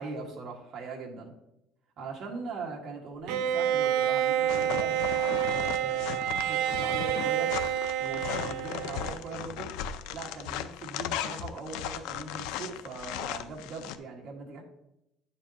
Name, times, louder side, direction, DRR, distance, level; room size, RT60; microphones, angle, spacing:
voice 1, 0.0-1.3 2.0-5.0 5.5-7.5 8.0-9.7 10.1-14.6, right 4 dB, 40° right, -1 dB, 1.7 m, -40 dB
Bowed string instrument, 3.3-9.3, right 10 dB, 85° right, 0.6 m, -28 dB
sound 1, 4.5-14.0, left 10 dB, 85° left, 0.5 m, -37 dB
9.6 x 7.0 x 2.9 m, 0.86 s
cardioid pair, 165°, 0 cm